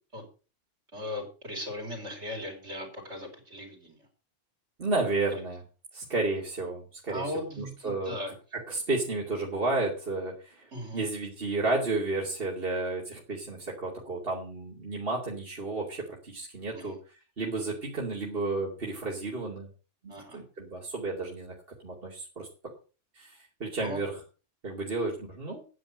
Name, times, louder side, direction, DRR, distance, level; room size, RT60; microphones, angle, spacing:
voice 1, 0.9-4.1 5.3-5.4 7.1-8.3 10.7-11.0 16.7-17.0 20.1-20.4 23.8-24.0, left 1 dB, 70° right, 2 dB, 4.6 m, -38 dB
voice 2, 4.8-5.6 5.9-7.3 7.6-8.2 8.5-10.7 10.9-17.0 17.4-19.7 20.0-21.5 21.8-22.5 23.1-24.1 24.6-25.6, right 3 dB, 50° right, -2 dB, 2.9 m, -32 dB
10.0 x 9.9 x 6.4 m, 0.35 s
omnidirectional pair, 1.2 m